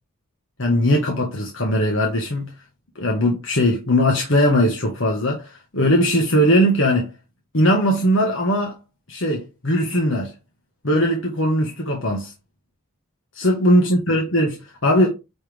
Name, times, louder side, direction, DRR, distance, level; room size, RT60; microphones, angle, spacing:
voice 1, 0.6-2.5 2.9-7.1 7.5-8.8 9.1-10.3 10.8-12.3 13.3-15.1, equal, 65° left, 1.6 m, -19 dB
9.0 x 4.4 x 3.6 m
head